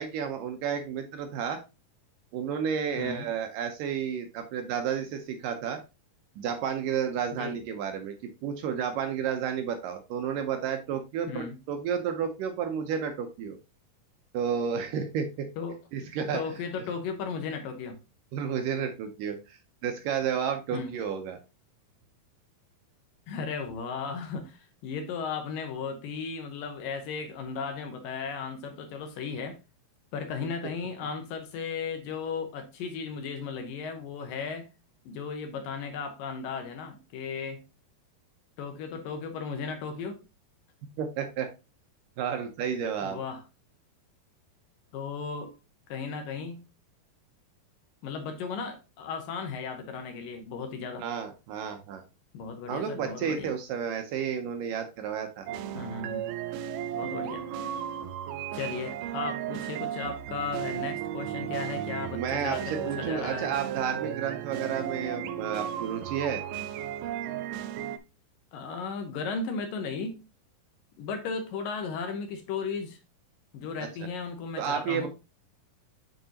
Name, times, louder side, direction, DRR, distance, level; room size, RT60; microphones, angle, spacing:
voice 1, 0.0-1.6 2.3-5.8 6.4-8.1 8.4-13.6 14.3-15.5 15.9-16.4 18.3-21.4 41.0-41.5 42.2-43.2 51.0-52.0 52.7-55.5 62.1-66.4 74.6-75.1, right 7 dB, 75° right, 2.1 m, -31 dB
voice 2, 3.0-3.3 7.3-7.6 11.3-11.6 15.6-15.8 16.3-18.0 20.7-20.9 23.3-29.6 30.1-34.7 35.1-37.6 38.6-40.2 43.0-43.4 44.9-45.5 45.9-46.6 48.0-51.1 52.3-53.5 55.7-56.3 56.9-57.4 58.5-63.5 68.5-70.2 71.0-73.0 73.5-75.1, left 5 dB, 70° left, 2.4 m, -35 dB
sound 1, 55.5-68.0, right 10 dB, 90° right, 1.8 m, -35 dB
7.8 x 4.8 x 2.8 m
omnidirectional pair, 4.4 m